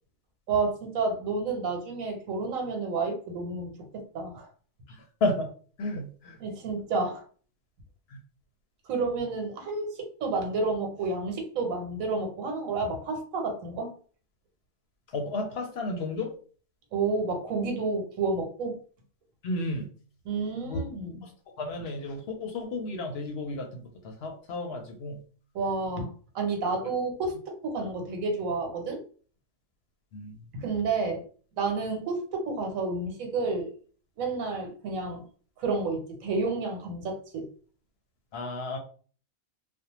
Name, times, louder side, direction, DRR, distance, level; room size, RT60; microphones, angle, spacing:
voice 1, 0.5-3.7 4.1-4.5 6.4-7.2 8.9-13.9 16.9-18.8 20.2-21.3 25.5-29.0 30.5-31.2 31.6-33.7 34.2-35.2 35.6-37.5, right 3 dB, 90° right, 3 dB, 1.2 m, -30 dB
voice 2, 4.9-5.5 5.8-6.4 8.1-8.2 15.1-16.3 19.4-19.9 20.6-20.8 21.2-21.3 21.6-25.2 26.6-26.8 30.1-30.3 38.3-38.8, left 2 dB, 65° left, 3 dB, 0.7 m, -32 dB
2.5 x 2.0 x 2.9 m, 0.41 s
omnidirectional pair, 1.4 m